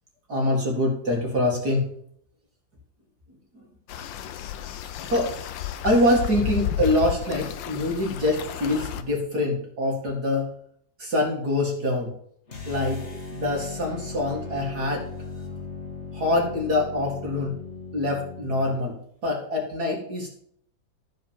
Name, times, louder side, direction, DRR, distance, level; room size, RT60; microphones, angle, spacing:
voice 1, 0.3-1.9 5.1-5.3 5.8-10.5 11.0-12.1 12.7-13.0 13.3-15.1 16.1-17.5 17.9-19.0 19.2-20.3, left 1 dB, 55° right, -1 dB, 2.6 m, -24 dB
sound 1, 3.9-9.0, left 10 dB, 75° left, 1.5 m, -32 dB
sound 2, 12.5-18.7, left 4 dB, 35° left, 2.1 m, -37 dB
13.0 x 5.2 x 7.3 m, 0.65 s
omnidirectional pair, 2.1 m